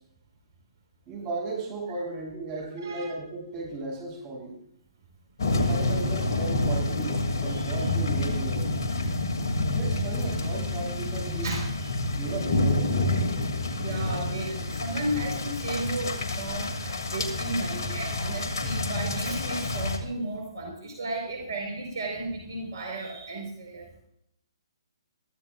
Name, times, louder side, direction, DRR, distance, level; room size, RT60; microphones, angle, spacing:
voice 1, 1.1-4.6 5.5-8.7 9.7-11.6 12.1-13.1, right 3 dB, 30° right, -1 dB, 7.4 m, -36 dB
voice 2, 2.8-3.1 5.5-5.6 6.5-6.6 7.4-7.7 11.4-12.0 13.7-23.9, right 2 dB, 55° right, 0 dB, 4.6 m, -34 dB
sound 1, 5.4-20.0, left 2 dB, 55° left, 2.6 m, -28 dB
22.0 x 14.5 x 2.5 m, 0.72 s
figure-of-eight pair, 135°, 3 cm